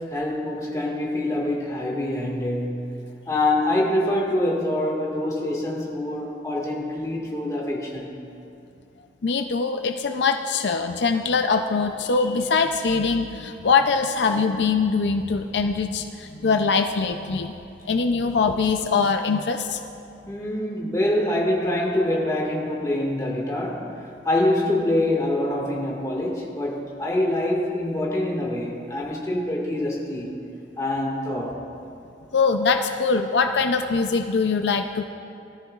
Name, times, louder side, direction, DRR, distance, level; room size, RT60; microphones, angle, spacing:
voice 1, 0.0-3.0 3.3-8.3 20.3-30.4 30.8-31.6, left 1 dB, 20° left, -2 dB, 1.8 m, -25 dB
voice 2, 9.2-17.5 17.8-19.8 32.3-35.1, left 4 dB, 80° left, 6 dB, 0.5 m, -22 dB
18.5 x 13.0 x 2.4 m, 2.6 s
head